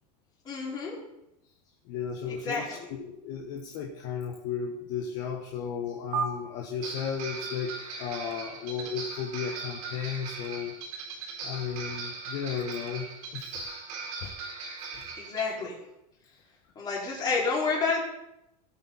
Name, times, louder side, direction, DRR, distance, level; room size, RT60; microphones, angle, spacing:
voice 1, 0.4-1.0 2.3-2.9 15.2-15.8 16.7-18.0, left 4 dB, 20° left, -5 dB, 4.7 m, -29 dB
voice 2, 1.9-7.7 8.0-10.7 11.4-13.7 14.2-14.3, left 7 dB, 45° left, 1 dB, 1.5 m, -34 dB
sound 1, 6.1-6.2 6.8-15.4, right 5 dB, 55° right, 3.8 m, -38 dB
17.5 x 8.6 x 4.2 m, 0.86 s
supercardioid pair, 165°, 20 cm